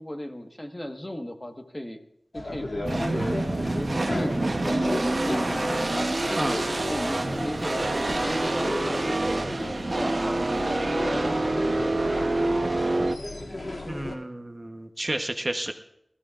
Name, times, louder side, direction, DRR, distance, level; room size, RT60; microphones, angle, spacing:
voice 1, 0.0-2.0 2.3-13.1, left 1 dB, 25° left, 4 dB, 1.4 m, -36 dB
sound 1, 2.3-14.1, left 1 dB, 60° left, 2.5 m, -34 dB
sound 2, 2.8-13.2, right 2 dB, 60° right, 0.9 m, -27 dB
voice 2, 13.8-15.7, right 1 dB, 30° right, 5 dB, 1.0 m, -31 dB
25.5 x 14.5 x 2.5 m, 0.77 s
wide cardioid pair, 55°, 0 cm